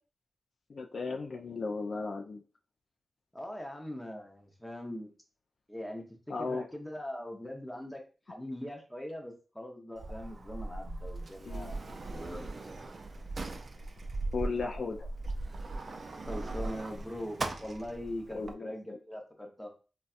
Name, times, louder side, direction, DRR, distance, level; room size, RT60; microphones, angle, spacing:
voice 1, 0.7-2.4 6.3-6.6 11.5-11.7 14.3-15.1 18.3-19.0, left 4 dB, 60° left, 4 dB, 0.3 m, -36 dB
voice 2, 3.3-5.1 5.7-6.0 6.4-12.5 15.7-15.8 16.2-19.7, left 1 dB, 10° left, 2 dB, 0.7 m, -41 dB
Sliding door, 10.0-18.5, right 2 dB, 45° right, 0.4 m, -39 dB
4.0 x 2.2 x 2.3 m, 0.34 s
wide cardioid pair, 95°, 0 cm